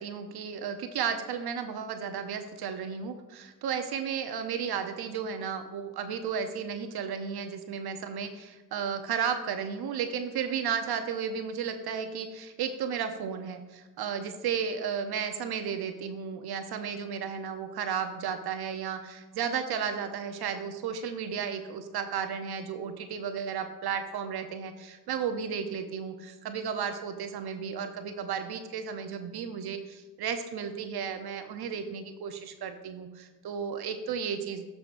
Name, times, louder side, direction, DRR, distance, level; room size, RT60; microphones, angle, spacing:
voice 1, 0.0-34.6, right 7 dB, 55° right, 8 dB, 0.8 m, -33 dB
13.5 x 4.9 x 2.6 m, 1.2 s
supercardioid pair, 65°, 45 cm